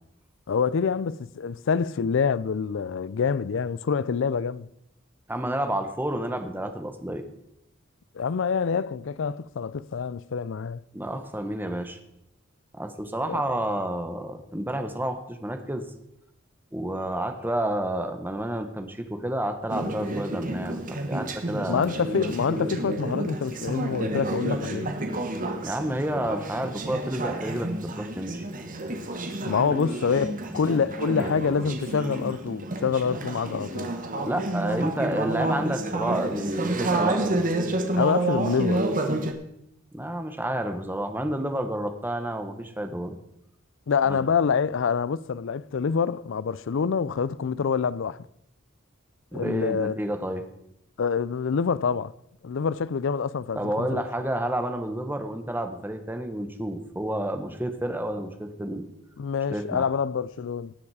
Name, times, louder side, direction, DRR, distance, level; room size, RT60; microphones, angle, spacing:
voice 1, 0.5-4.7 8.1-10.8 13.3-13.4 21.7-24.9 29.4-33.9 38.0-38.9 43.9-48.3 49.3-50.0 51.0-52.1 52.4-54.0 59.2-60.7, left 6 dB, 65° left, 0.4 m, -26 dB
voice 2, 5.3-7.2 10.9-12.0 12.7-15.9 16.7-21.8 25.6-28.5 30.5-30.6 31.1-31.3 34.2-37.4 39.9-43.2 44.1-44.2 49.3-50.4 53.5-58.9 59.5-59.8, right 1 dB, 10° right, 1.1 m, -30 dB
Conversation / Chatter, 19.7-39.3, right 2 dB, 40° right, 1.4 m, -30 dB
19.0 x 7.1 x 4.8 m
head